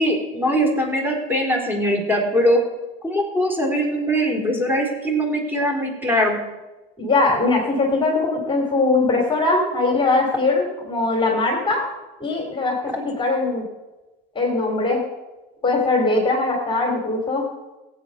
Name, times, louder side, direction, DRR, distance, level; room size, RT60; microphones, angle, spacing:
voice 1, 0.0-2.6 3.0-6.4, equal, 5° right, 1 dB, 3.7 m, -21 dB
voice 2, 7.0-11.9 12.2-13.6 14.3-15.0 15.6-17.4, left 3 dB, 15° left, -1 dB, 2.7 m, -21 dB
16.0 x 8.4 x 6.4 m, 1.1 s
supercardioid pair, 110°, 29 cm